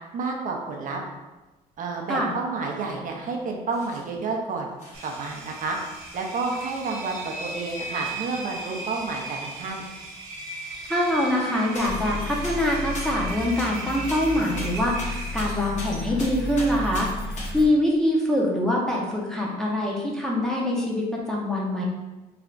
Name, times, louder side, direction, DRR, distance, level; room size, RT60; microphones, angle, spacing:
voice 1, 0.1-1.0 1.8-4.7 5.0-5.8 6.1-9.8, right 4 dB, 50° right, 1 dB, 0.6 m, -30 dB
sound 1, 2.1-2.2 2.9-3.1 3.7-4.2 4.8-5.2 6.0-6.1 6.6-6.7 7.1-8.4 9.9-10.0 10.2-10.4 11.7-12.1 12.4-13.8 14.1-17.5 18.3-18.6, left 1 dB, 45° left, 1.1 m, -40 dB
Engine, 4.9-15.8, right 2 dB, 90° right, 0.9 m, -37 dB
voice 2, 10.9-17.1 17.5-21.8, left 1 dB, 5° left, -3 dB, 0.7 m, -24 dB
sound 2, 11.8-17.7, left 1 dB, 75° left, 0.8 m, -33 dB
3.3 x 2.4 x 3.8 m, 1.1 s
cardioid pair, 110°, 17 cm